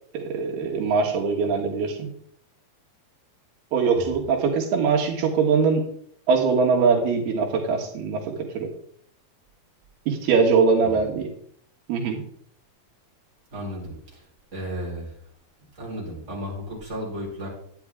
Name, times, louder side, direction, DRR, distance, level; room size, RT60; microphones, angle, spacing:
voice 1, 0.1-2.1 3.7-5.9 6.3-8.2 8.6-8.7 10.1-11.3 11.9-12.2, right 5 dB, 85° right, 1 dB, 3.5 m, -22 dB
voice 2, 13.5-14.2 14.5-15.1 15.8-17.5, equal, 20° right, -4 dB, 4.2 m, -34 dB
11.5 x 9.6 x 3.6 m, 0.62 s
omnidirectional pair, 4.4 m